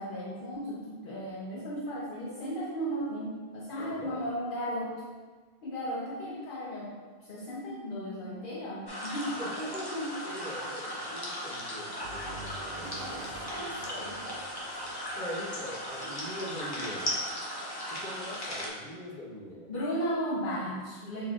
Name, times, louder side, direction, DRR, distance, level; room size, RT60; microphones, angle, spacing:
voice 1, 0.0-5.0 5.6-6.9 7.3-9.4 12.8-13.2 13.5-14.2 16.0-16.1 19.7-21.3, equal, 60° left, -6 dB, 0.8 m, -35 dB
voice 2, 3.7-4.2 9.4-13.5 15.1-17.1 17.9-19.7, equal, 45° left, -6 dB, 1.2 m, -41 dB
sound 1, 8.9-18.7, equal, 25° left, 0.7 m, -37 dB
sound 2, 12.0-16.1, right 3 dB, 75° right, 0.8 m, -47 dB
6.0 x 3.0 x 2.4 m, 1.4 s
omnidirectional pair, 1.1 m